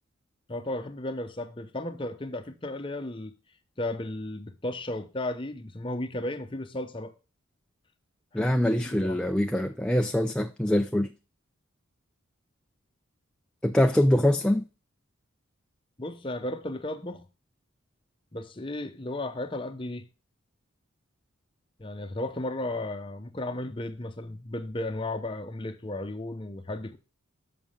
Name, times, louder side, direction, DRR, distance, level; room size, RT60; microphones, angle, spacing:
voice 1, 0.5-3.3 3.8-7.1 8.3-9.2 16.0-17.3 18.3-20.1 21.8-27.0, left 1 dB, 25° left, 0.8 m, -34 dB
voice 2, 8.3-11.1 13.6-14.7, left 1 dB, 5° left, 0.4 m, -24 dB
7.4 x 5.9 x 4.9 m
head